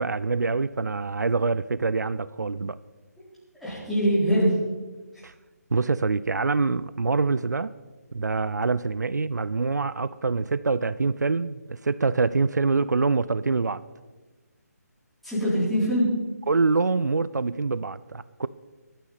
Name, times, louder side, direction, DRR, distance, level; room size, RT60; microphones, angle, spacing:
voice 1, 0.0-2.8 5.2-5.3 5.7-7.7 8.1-13.8 16.5-18.5, right 4 dB, 85° right, 0.5 m, -25 dB
voice 2, 3.6-4.6 15.2-16.2, equal, ahead, 4.2 m, -23 dB
23.5 x 9.1 x 4.2 m
figure-of-eight pair, 155°, 9 cm